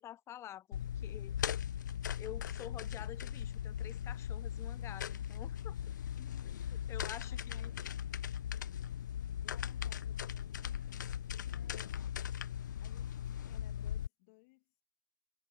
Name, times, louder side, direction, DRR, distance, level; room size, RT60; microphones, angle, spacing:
voice 1, 0.0-1.4 2.2-5.8 6.9-7.7, left 12 dB, 25° left, 0.7 m, -49 dB
sound 1, 0.7-14.1, left 10 dB, 65° left, 0.4 m, -39 dB
voice 2, 6.2-7.7 9.4-12.1 12.8-14.8, left 29 dB, 45° left, 2.6 m, -63 dB
figure-of-eight pair, 100°, 11 cm